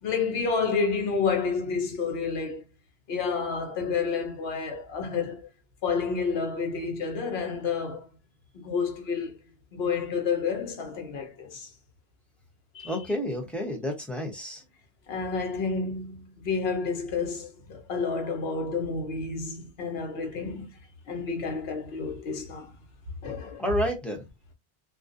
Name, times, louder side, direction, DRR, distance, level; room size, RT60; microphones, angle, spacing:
voice 1, 0.0-2.6 3.1-5.5 5.8-8.1 8.5-9.4 9.7-11.7 12.7-13.0 15.1-20.7 21.1-22.7 23.2-23.6, left 5 dB, 70° left, 0.9 m, -30 dB
voice 2, 12.8-14.6 23.6-24.2, equal, ahead, 0.5 m, -30 dB
2.4 x 2.2 x 2.5 m
omnidirectional pair, 1.1 m